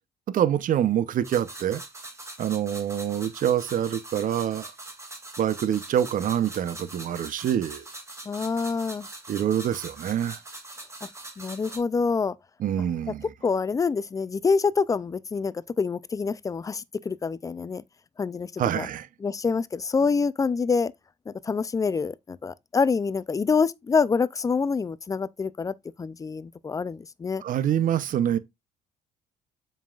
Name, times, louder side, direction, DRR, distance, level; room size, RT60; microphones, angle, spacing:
voice 1, 0.3-1.8 2.4-4.7 5.4-7.8 9.3-10.4 12.6-13.3 18.6-19.1 27.4-28.4, right 10 dB, 55° right, 0.7 m, -26 dB
sound 1, 1.2-11.8, right 2 dB, 15° right, 2.3 m, -42 dB
voice 2, 8.3-9.1 11.0-11.1 11.4-12.4 13.4-17.8 18.2-18.9 19.2-20.9 21.3-27.4, left 5 dB, 20° left, 0.4 m, -26 dB
7.4 x 5.5 x 2.4 m
cardioid pair, 110°, 17 cm